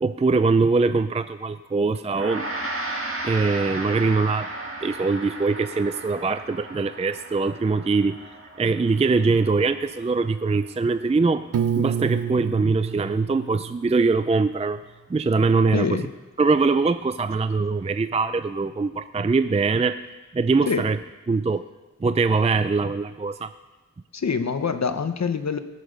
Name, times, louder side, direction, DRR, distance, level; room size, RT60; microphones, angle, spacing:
voice 1, 0.0-2.4 3.2-4.5 4.8-8.2 8.6-11.5 11.8-14.8 15.1-16.0 16.4-20.0 20.3-21.0 21.3-21.6 22.0-23.5, right 4 dB, 20° right, 12 dB, 0.3 m, -22 dB
Gong, 2.1-11.6, right 2 dB, 45° right, 1.7 m, -35 dB
Piano, 11.5-14.5, right 8 dB, 85° right, 0.5 m, -29 dB
voice 2, 15.7-16.1 20.7-20.9 24.1-25.6, left 5 dB, 60° left, 9 dB, 0.8 m, -25 dB
18.0 x 6.7 x 5.2 m, 1.2 s
wide cardioid pair, 45°, 30 cm